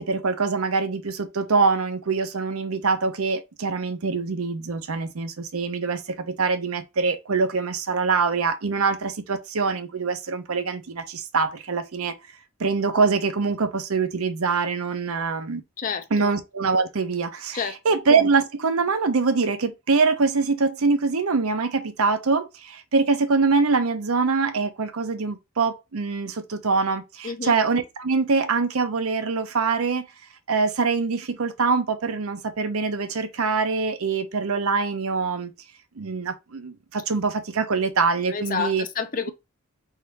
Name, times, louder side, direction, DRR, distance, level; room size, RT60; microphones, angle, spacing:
voice 1, 0.0-12.1 12.6-15.6 16.1-30.1 30.5-35.5 36.0-38.8, right 4 dB, 75° right, 0.7 m, -24 dB
voice 2, 15.8-16.3 17.5-18.0 27.2-27.5 38.3-39.3, left 5 dB, 40° left, 0.6 m, -29 dB
3.6 x 2.6 x 4.4 m
head